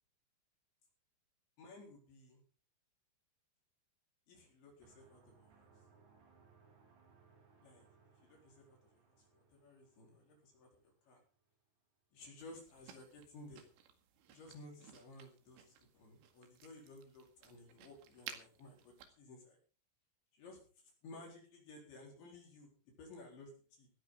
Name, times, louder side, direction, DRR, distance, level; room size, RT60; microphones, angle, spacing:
voice 1, 1.6-2.4 4.3-5.5 7.6-7.9 8.2-8.8 9.2-11.2 12.1-13.7 14.3-19.6 20.3-20.6 21.0-22.7 23.0-23.9, left 2 dB, 65° left, -1 dB, 6.6 m, -56 dB
sound 1, 4.8-11.5, right 5 dB, 65° right, 5.4 m, -68 dB
sound 2, 12.4-19.1, right 9 dB, 85° right, 4.5 m, -57 dB
17.5 x 14.5 x 3.9 m, 0.39 s
omnidirectional pair, 5.8 m